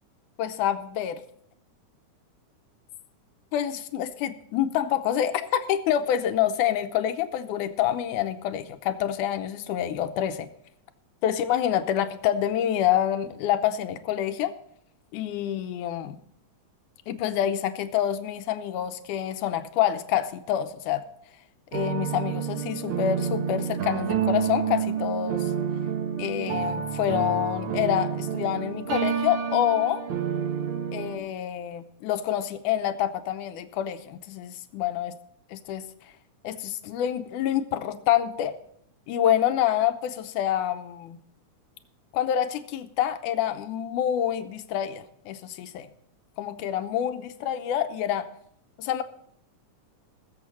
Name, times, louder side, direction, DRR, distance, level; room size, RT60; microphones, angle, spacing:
voice 1, 0.4-1.2 3.5-10.5 11.2-14.5 15.1-16.2 17.1-21.0 21.7-25.5 26.2-30.0 30.9-35.1 35.7-35.9 36.4-38.5 39.1-41.2 42.1-45.9 46.4-48.3 48.8-49.0, left 10 dB, 85° left, 9 dB, 2.3 m, -27 dB
sound 1, 21.7-31.2, right 7 dB, 60° right, 1.4 m, -29 dB
20.5 x 7.4 x 4.2 m, 0.70 s
omnidirectional pair, 3.5 m